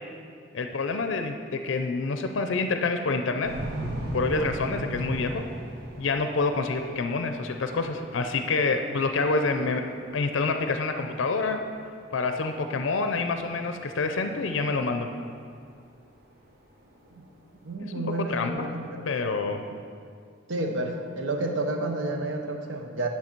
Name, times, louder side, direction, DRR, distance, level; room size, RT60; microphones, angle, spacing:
voice 1, 0.5-3.5 4.1-5.4 6.0-9.8 10.1-11.6 12.1-15.1 18.2-18.7 19.1-19.6, left 3 dB, 75° left, 6 dB, 0.5 m, -27 dB
sound 1, 3.4-17.6, right 1 dB, 50° right, 1.1 m, -38 dB
voice 2, 17.6-19.2 19.7-19.8 20.5-23.1, right 2 dB, 75° right, 3 dB, 0.9 m, -30 dB
9.7 x 5.8 x 4.5 m, 2.4 s
head